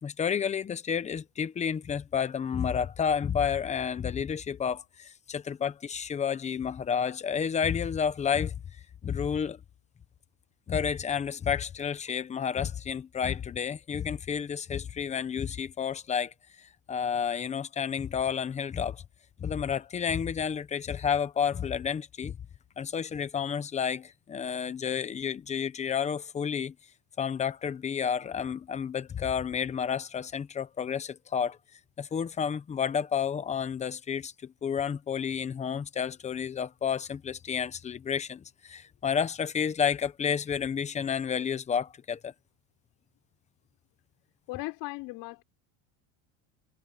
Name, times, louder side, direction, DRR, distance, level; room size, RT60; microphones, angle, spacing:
voice 1, 0.0-8.6 9.0-9.6 10.7-19.0 19.4-22.4 22.8-26.7 27.2-31.6 32.0-42.3, left 7 dB, 15° left, 0.8 m, -31 dB
voice 2, 44.5-45.4, left 22 dB, 55° left, 6.2 m, -37 dB
cardioid pair, 160°, 44 cm